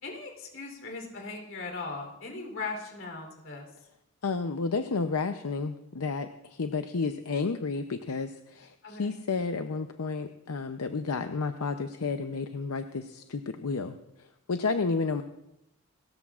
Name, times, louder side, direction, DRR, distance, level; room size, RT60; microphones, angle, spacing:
voice 1, 0.0-3.7 8.8-9.1, left 3 dB, 60° left, 2 dB, 3.4 m, -38 dB
voice 2, 4.2-13.9 14.5-15.2, left 4 dB, 80° left, 7 dB, 0.6 m, -31 dB
29.0 x 13.5 x 2.4 m, 0.87 s
head